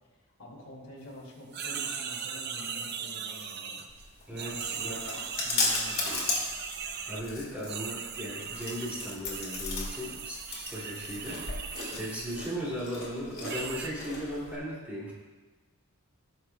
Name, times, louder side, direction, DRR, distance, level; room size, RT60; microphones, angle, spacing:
voice 1, 0.1-3.8 4.3-6.4 7.5-7.7 11.8-12.1, left 1 dB, 70° left, -3 dB, 2.3 m, -48 dB
sound 1, 1.5-4.0 4.4-7.2 7.7-12.5 13.4-13.9, right 6 dB, 45° right, 0.6 m, -38 dB
Chewing mastication, 3.9-14.6, left 3 dB, 45° left, 2.3 m, -36 dB
voice 2, 4.3-5.0 7.1-11.4 12.0-15.1, equal, 5° right, -8 dB, 2.6 m, -37 dB
18.0 x 6.6 x 2.3 m, 1.3 s
head